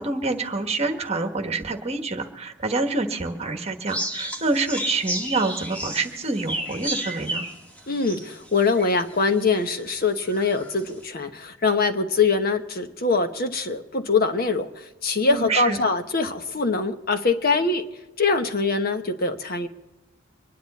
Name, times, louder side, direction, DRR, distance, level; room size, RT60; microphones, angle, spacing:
voice 1, 0.0-7.4 15.3-15.8, right 3 dB, 35° right, 6 dB, 1.4 m, -27 dB
sound 1, 3.9-9.1 9.6-9.7 10.2-10.7, right 1 dB, 5° left, 1.8 m, -32 dB
voice 2, 7.9-17.9 18.2-19.7, left 4 dB, 50° left, 7 dB, 1.1 m, -23 dB
25.0 x 10.5 x 4.2 m, 1.0 s
head